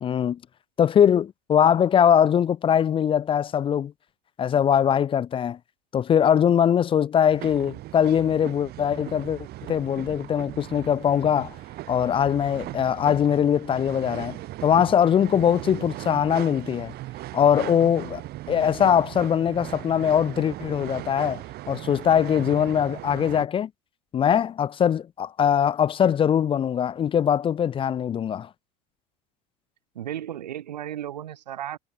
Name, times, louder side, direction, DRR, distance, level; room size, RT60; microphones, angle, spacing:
voice 1, 0.0-0.4 0.8-3.9 4.4-5.6 5.9-11.5 11.9-16.9 17.3-18.2 18.5-23.7 24.1-28.5, left 8 dB, 25° left, 0.5 m, -22 dB
sound 1, 7.3-23.5, right 16 dB, 50° right, 2.0 m, -38 dB
voice 2, 29.9-31.8, right 11 dB, 90° right, 0.7 m, -34 dB
hypercardioid pair, 85°, 21 cm